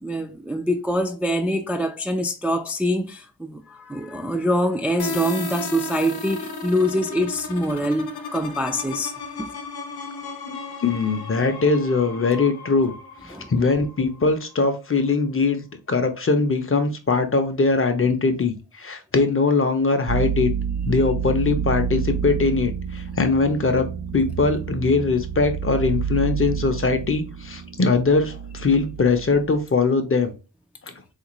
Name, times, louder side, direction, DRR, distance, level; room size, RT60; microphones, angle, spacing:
voice 1, 0.0-9.1 13.3-13.5, equal, 5° right, 0.3 m, -24 dB
sound 1, 5.0-14.6, left 3 dB, 85° left, 0.7 m, -35 dB
voice 2, 10.8-12.9 13.2-20.5 20.9-23.9 24.1-30.3 30.9-31.0, left 4 dB, 35° left, 0.6 m, -21 dB
sound 2, 20.1-29.7, right 7 dB, 85° right, 0.6 m, -29 dB
3.6 x 2.5 x 2.9 m
wide cardioid pair, 70°, 37 cm